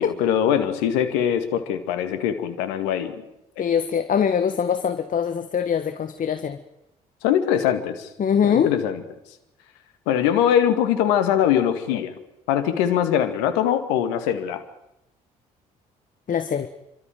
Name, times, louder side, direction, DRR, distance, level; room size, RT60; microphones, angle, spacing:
voice 1, 0.0-3.2 7.2-8.1 8.4-9.0 10.1-12.1 12.5-14.6, left 9 dB, 85° left, 9 dB, 2.1 m, -22 dB
voice 2, 3.6-6.6 8.2-8.7 16.3-16.7, left 7 dB, 50° left, 10 dB, 1.6 m, -23 dB
28.5 x 13.5 x 9.3 m, 0.90 s
hypercardioid pair, 55°, 18 cm